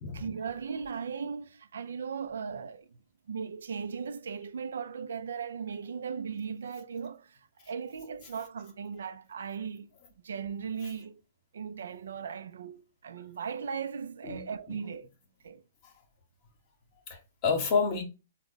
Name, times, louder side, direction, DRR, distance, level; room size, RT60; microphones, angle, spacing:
voice 1, 0.1-3.0 3.3-9.9 10.2-11.2 11.5-15.1 15.4-15.6, right 6 dB, 80° right, 0.3 m, -38 dB
voice 2, 17.1-18.0, left 5 dB, 45° left, 0.8 m, -29 dB
3.4 x 2.1 x 3.7 m
hypercardioid pair, 135°, 0 cm